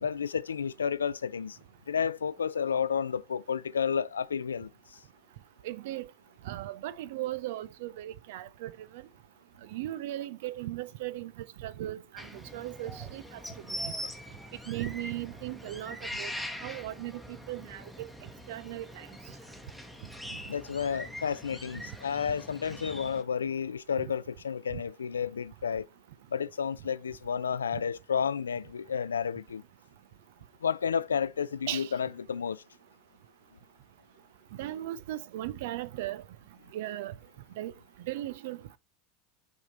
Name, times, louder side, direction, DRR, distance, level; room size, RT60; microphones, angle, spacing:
voice 1, 0.0-1.6 1.9-4.7 20.5-25.9 26.3-29.6 30.6-32.6, left 7 dB, 85° left, 0.3 m, -31 dB
voice 2, 5.6-6.1 6.5-8.7 9.7-11.3 11.6-12.3 12.5-13.2 13.7-13.9 14.7-16.3 16.6-18.1 18.5-19.1 24.0-24.1 31.7-31.9 34.6-36.2 36.7-37.1 37.6-37.7 38.0-38.8, right 14 dB, 65° right, 0.5 m, -37 dB
sound 1, 12.2-23.2, left 1 dB, ahead, 1.1 m, -43 dB
7.3 x 3.6 x 4.0 m
hypercardioid pair, 85°, 0 cm